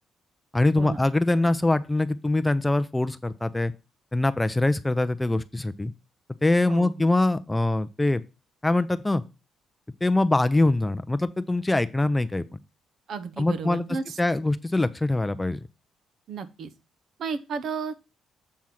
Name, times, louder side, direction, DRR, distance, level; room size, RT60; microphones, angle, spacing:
voice 1, 0.5-3.7 4.1-5.9 6.4-8.2 8.6-9.2 10.0-12.6 13.4-13.8 14.2-15.6, left 2 dB, 10° left, 12 dB, 0.5 m, -23 dB
voice 2, 6.7-7.1 13.1-14.2 16.3-16.7 17.2-17.9, right 5 dB, 65° right, 11 dB, 0.8 m, -33 dB
7.6 x 3.6 x 5.8 m, 0.29 s
cardioid pair, 90°, 0 cm